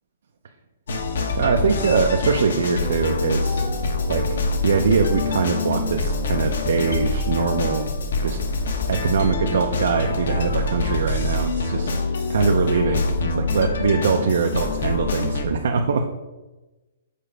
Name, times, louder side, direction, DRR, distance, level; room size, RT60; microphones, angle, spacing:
sound 1, 0.9-15.4, left 3 dB, 65° left, 1.0 m, -25 dB
voice 1, 1.4-3.7 4.1-7.9 8.2-8.4 8.9-11.9 12.3-16.1, right 5 dB, 60° right, 3 dB, 0.5 m, -22 dB
6.7 x 4.4 x 5.0 m, 1.1 s
hypercardioid pair, 180°, 0 cm